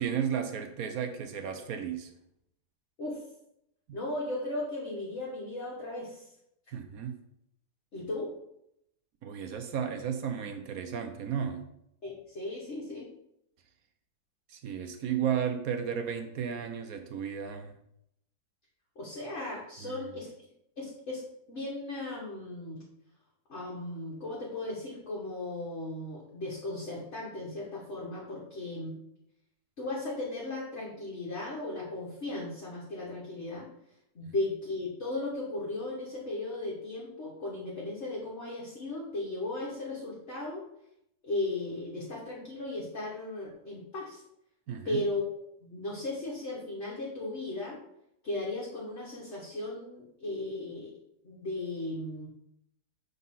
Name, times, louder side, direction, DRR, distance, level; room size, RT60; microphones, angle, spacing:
voice 1, 0.0-2.1 6.7-7.2 9.2-11.7 14.5-17.7 19.8-20.1 44.7-45.0, right 8 dB, 65° right, 7 dB, 1.0 m, -33 dB
voice 2, 3.9-6.3 7.9-8.3 12.0-13.1 18.9-20.3 20.8-21.2 21.5-22.8 23.5-28.9 29.8-33.7 34.1-40.6 41.2-44.2 44.8-45.2 45.6-47.8 48.2-50.9 51.2-52.3, left 2 dB, 45° left, -5 dB, 1.6 m, -36 dB
6.5 x 4.0 x 5.4 m, 0.78 s
omnidirectional pair, 1.8 m